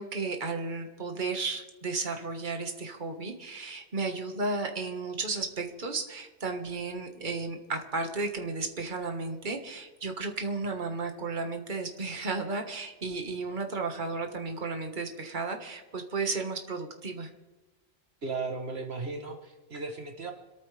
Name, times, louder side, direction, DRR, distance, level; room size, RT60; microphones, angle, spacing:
voice 1, 0.0-17.3, right 3 dB, 45° right, 4 dB, 1.7 m, -33 dB
voice 2, 18.2-20.3, right 4 dB, 65° right, 4 dB, 1.5 m, -36 dB
27.0 x 13.5 x 3.4 m, 1.1 s
omnidirectional pair, 1.2 m